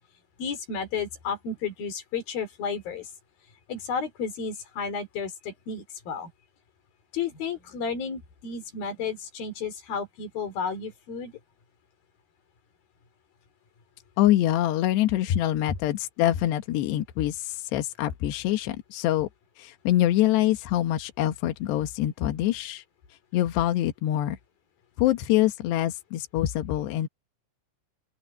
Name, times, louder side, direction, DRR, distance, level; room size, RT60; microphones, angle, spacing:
voice 1, 0.4-3.1 3.7-6.3 7.1-11.3, left 5 dB, 60° left, 6.0 m, -32 dB
voice 2, 14.2-19.3 19.6-22.8 23.3-24.4 25.0-27.1, left 13 dB, 80° left, 3.4 m, -25 dB
open air
omnidirectional pair, 4.8 m